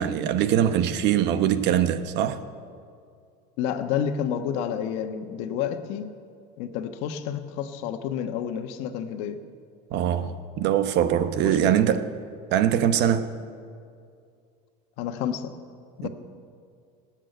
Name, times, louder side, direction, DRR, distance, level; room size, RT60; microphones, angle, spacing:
voice 1, 0.0-2.4 9.9-12.0 12.5-13.3 16.0-16.1, right 10 dB, 55° right, 1.0 m, -22 dB
voice 2, 3.6-6.1 6.6-9.4 15.0-15.5 16.0-16.1, left 8 dB, 65° left, 1.3 m, -29 dB
18.5 x 7.5 x 9.2 m
supercardioid pair, 125°, 21 cm